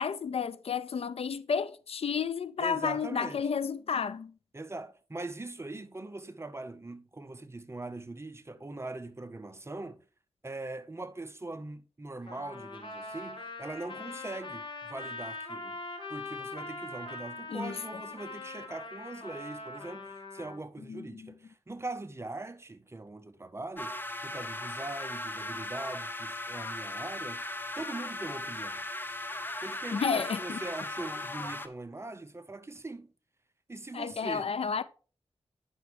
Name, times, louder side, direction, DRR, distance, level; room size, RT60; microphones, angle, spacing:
voice 1, 0.0-4.3 17.5-17.8 20.9-21.3 29.9-30.6 33.9-34.8, left 6 dB, 65° left, 0.4 m, -31 dB
voice 2, 2.6-3.5 4.5-10.0 10.4-15.8 16.1-24.0 24.2-27.4 27.8-28.9 29.6-33.1 33.7-34.5, right 2 dB, 25° right, 0.6 m, -41 dB
Trumpet, 12.3-20.6, left 3 dB, 45° left, 1.8 m, -42 dB
sound 1, 23.8-31.7, left 1 dB, 20° left, 0.6 m, -38 dB
9.4 x 6.0 x 3.3 m
wide cardioid pair, 75°, 11 cm